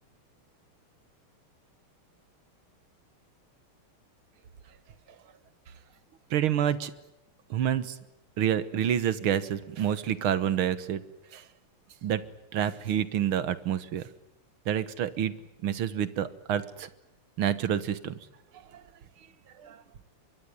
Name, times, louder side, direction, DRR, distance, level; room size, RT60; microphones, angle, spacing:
voice 1, 6.3-6.9 7.5-8.0 8.4-11.0 11.3-11.4 12.0-12.2 12.5-14.0 14.7-15.3 15.6-16.9 17.4-18.1 19.6-19.8, right 10 dB, 75° right, 14 dB, 2.1 m, -28 dB
24.0 x 22.5 x 9.7 m, 0.87 s
omnidirectional pair, 2.4 m